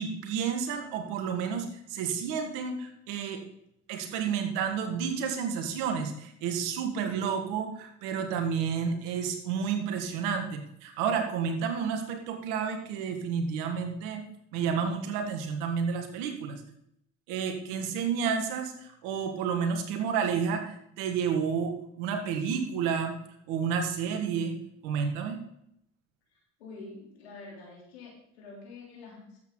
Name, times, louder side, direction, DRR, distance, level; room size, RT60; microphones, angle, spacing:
voice 1, 0.0-3.4 3.9-14.2 14.5-16.6 17.3-23.2 23.5-24.5 24.8-25.4, right 6 dB, 80° right, 5 dB, 1.8 m, -30 dB
voice 2, 26.3-29.4, left 3 dB, 90° left, -2 dB, 3.5 m, -47 dB
12.5 x 8.2 x 3.9 m, 0.77 s
hypercardioid pair, 60°, 32 cm